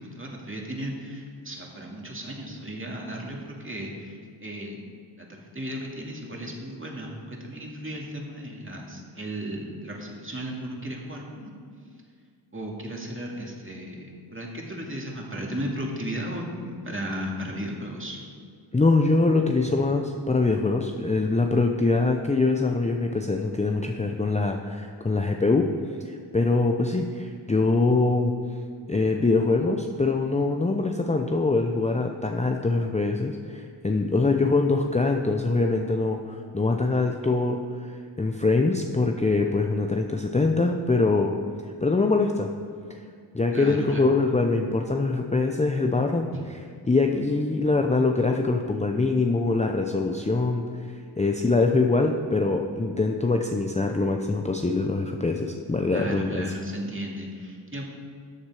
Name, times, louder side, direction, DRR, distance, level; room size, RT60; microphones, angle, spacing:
voice 1, 0.0-4.8 5.2-11.5 12.5-18.3 43.5-44.0 46.3-46.4 55.9-57.9, equal, 25° right, -1 dB, 2.3 m, -35 dB
voice 2, 18.7-25.7 26.0-28.3 28.9-41.3 41.8-42.5 42.9-43.0 43.3-46.3 46.9-56.5, left 3 dB, 15° left, 3 dB, 0.6 m, -23 dB
13.5 x 7.2 x 4.8 m, 2.2 s
cardioid pair, 70°, 49 cm